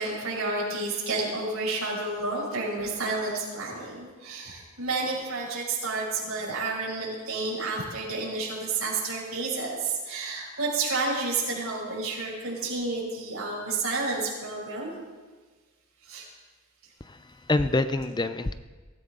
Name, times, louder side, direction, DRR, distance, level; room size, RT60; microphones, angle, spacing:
voice 1, 0.0-14.9 16.1-16.3, right 3 dB, 70° right, -4 dB, 6.0 m, -30 dB
voice 2, 17.0-18.5, left 2 dB, 20° left, 11 dB, 0.5 m, -27 dB
23.0 x 15.0 x 3.8 m, 1.3 s
head